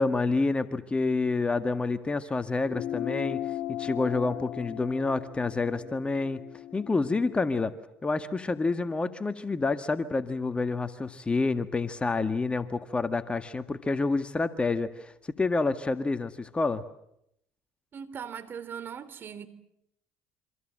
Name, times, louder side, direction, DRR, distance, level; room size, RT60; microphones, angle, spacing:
voice 1, 0.0-3.4 3.7-6.4 6.7-7.7 8.0-16.8, left 3 dB, 20° left, 1.7 m, -28 dB
sound 1, 2.6-7.5, left 12 dB, 55° left, 2.0 m, -37 dB
voice 2, 17.9-19.5, right 7 dB, 40° right, 3.3 m, -39 dB
27.5 x 25.5 x 7.8 m
hypercardioid pair, 70°, 5 cm